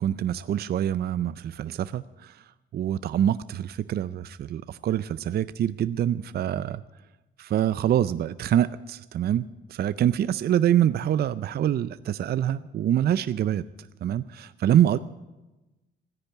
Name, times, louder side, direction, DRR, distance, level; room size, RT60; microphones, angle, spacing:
voice 1, 0.0-2.4 2.7-6.8 7.4-13.7 14.0-15.0, right 10 dB, 55° right, 15 dB, 0.5 m, -25 dB
14.0 x 10.0 x 8.1 m, 1.1 s
cardioid pair, 90°, 20 cm